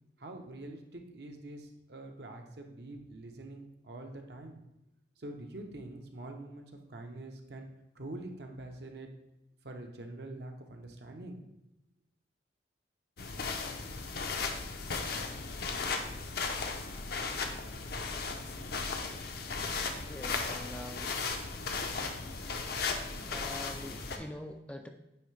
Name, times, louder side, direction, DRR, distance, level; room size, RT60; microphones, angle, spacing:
voice 1, 0.2-4.6 5.2-6.6 6.9-7.7 7.9-9.1 9.6-11.4, right 2 dB, 60° right, 3 dB, 0.8 m, -45 dB
sound 1, 13.2-24.2, left 4 dB, 60° left, 0.6 m, -36 dB
voice 2, 20.0-21.2 23.3-24.9, left 1 dB, 5° left, 5 dB, 0.3 m, -44 dB
9.0 x 3.3 x 3.2 m, 0.94 s
head